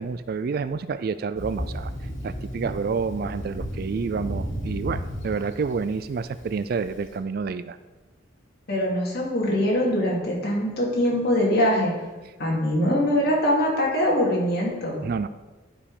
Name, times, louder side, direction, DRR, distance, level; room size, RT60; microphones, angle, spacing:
voice 1, 0.0-1.9 2.2-7.8 15.0-15.3, right 5 dB, 50° right, 14 dB, 0.3 m, -29 dB
Thunder, 1.3-7.0, equal, 90° left, 2.2 m, -34 dB
voice 2, 8.7-11.9 12.4-15.0, left 1 dB, 55° left, -4 dB, 2.6 m, -23 dB
11.5 x 5.3 x 4.9 m, 1.2 s
head